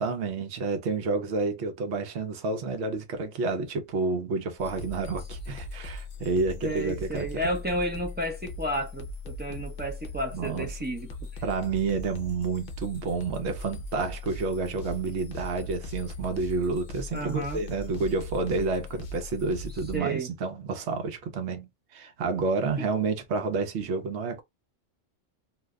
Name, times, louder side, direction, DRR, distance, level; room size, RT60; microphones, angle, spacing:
voice 1, 0.0-7.4 9.5-9.7 10.3-10.7 11.4-24.4, right 4 dB, 65° right, 0.9 m, -30 dB
sound 1, 4.6-20.0, left 2 dB, 50° left, 0.6 m, -39 dB
voice 2, 6.6-11.1 11.3-11.4 17.1-17.6 19.9-20.3, right 1 dB, 15° right, 0.3 m, -32 dB
2.6 x 2.1 x 3.5 m
omnidirectional pair, 1.3 m